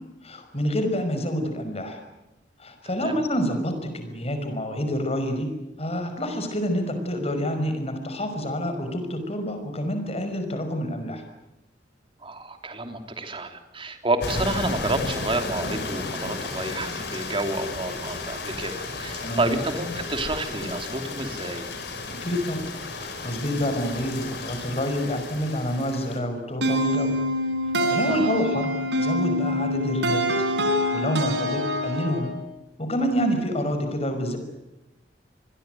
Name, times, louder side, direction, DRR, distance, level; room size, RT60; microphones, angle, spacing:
voice 1, 0.2-2.0 2.6-5.5 5.8-11.2 19.2-19.5 22.1-22.7 23.0-27.1 27.9-28.7 29.0-30.2 30.9-32.3 32.8-34.4, equal, 35° left, 7 dB, 5.4 m, -27 dB
voice 2, 12.2-21.7 28.1-28.4, right 2 dB, 30° right, 6 dB, 3.2 m, -29 dB
sound 1, 14.2-26.2, left 3 dB, 70° left, 5.3 m, -33 dB
sound 2, 26.6-32.4, equal, 85° right, 4.2 m, -25 dB
27.0 x 21.5 x 9.3 m, 0.98 s
head